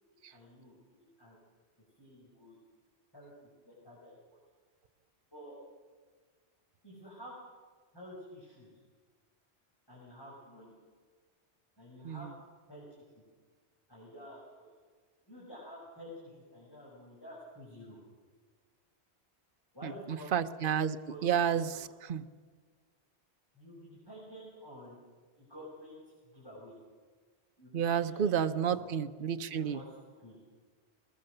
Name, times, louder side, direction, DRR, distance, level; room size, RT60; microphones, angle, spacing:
voice 1, 0.1-1.4 2.0-2.6 3.1-4.4 5.3-5.6 6.8-7.3 7.9-8.7 9.9-10.8 11.8-12.3 12.7-12.8 13.9-14.7 15.2-18.0 19.7-20.3 21.1-21.8 23.5-25.0 25.4-26.0 26.3-26.7 27.6-28.9 29.4-29.8 30.1-30.4, equal, 20° left, -6 dB, 6.5 m, -50 dB
voice 2, 20.3-21.0 21.2-22.2 27.7-29.8, right 8 dB, 55° right, 9 dB, 0.9 m, -30 dB
21.0 x 20.5 x 6.7 m, 1.5 s
omnidirectional pair, 1.1 m